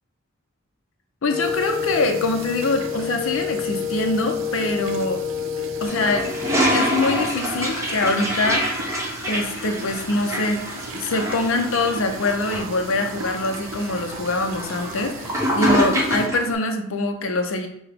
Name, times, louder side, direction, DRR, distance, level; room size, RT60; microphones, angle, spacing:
voice 1, 1.2-5.2 5.8-6.4 6.7-8.6 9.3-10.6 10.9-17.7, left 2 dB, 65° left, 4 dB, 0.6 m, -24 dB
Wind instrument woodwind instrument, 1.3-7.0, left 8 dB, 5° left, 1.3 m, -28 dB
sound 1, 1.4-16.3, right 3 dB, 65° right, 0.5 m, -37 dB
Toilet flush, 5.8-16.5, equal, 15° right, 0.9 m, -26 dB
5.7 x 2.2 x 3.4 m, 0.75 s
head